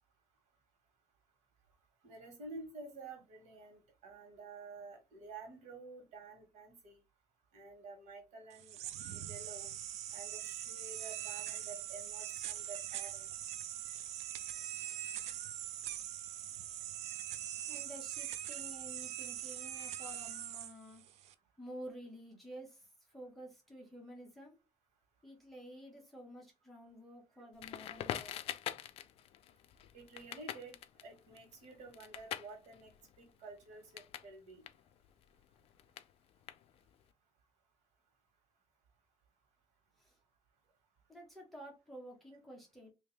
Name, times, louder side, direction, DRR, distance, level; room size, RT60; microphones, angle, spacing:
voice 1, 2.0-7.0 7.5-8.8 9.1-9.7 10.1-13.3 19.9-20.0 29.9-32.9 33.2-34.6, right 3 dB, 85° right, 1.6 m, -51 dB
sound 1, 8.5-21.3, right 11 dB, 65° right, 0.4 m, -42 dB
voice 2, 17.7-21.0 21.6-24.6 25.2-28.5 40.0-40.2 41.1-42.9, equal, ahead, 1.2 m, -51 dB
Crackle, 27.6-34.3 34.6-37.0, left 11 dB, 55° left, 0.4 m, -45 dB
3.4 x 2.8 x 3.3 m
cardioid pair, 175°, 12 cm